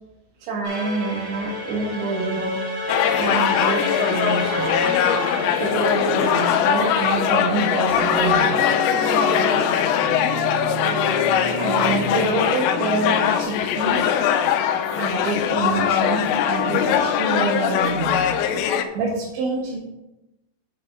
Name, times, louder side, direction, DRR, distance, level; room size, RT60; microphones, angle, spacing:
voice 1, 0.4-2.6 3.2-4.8 5.6-8.6 11.6-14.1 15.0-18.3 18.9-19.8, right 3 dB, 80° right, -6 dB, 4.0 m, -26 dB
sound 1, 0.6-13.4, left 1 dB, 50° right, 4.3 m, -29 dB
sound 2, 2.9-18.8, left 9 dB, 85° left, 2.8 m, -21 dB
8.4 x 8.1 x 3.7 m, 0.94 s
omnidirectional pair, 5.2 m